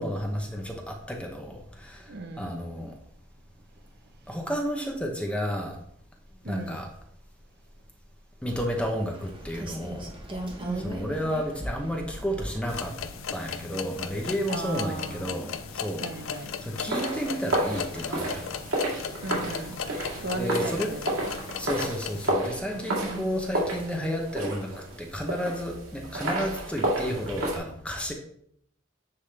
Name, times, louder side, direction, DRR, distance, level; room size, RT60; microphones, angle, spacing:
voice 1, 0.0-2.0 2.4-2.9 4.3-5.8 6.5-6.9 8.4-10.1 10.8-12.9 13.3-15.5 15.8-16.0 16.6-18.4 20.4-20.9 21.6-24.7 25.0-28.1, equal, 5° left, 2 dB, 0.8 m, -31 dB
voice 2, 2.1-2.5 6.4-6.8 10.6-11.0 14.5-15.3 16.0-16.5 18.5-18.6 19.2-19.8 20.2-21.3 22.7-23.3, right 3 dB, 55° right, 6 dB, 0.8 m, -36 dB
Rain, 8.5-25.0, right 1 dB, 25° right, 1.1 m, -43 dB
sound 1, 12.7-22.3, left 7 dB, 75° left, 0.5 m, -37 dB
sound 2, 16.8-27.6, right 1 dB, 75° right, 2.1 m, -31 dB
9.6 x 3.7 x 3.3 m, 0.69 s
head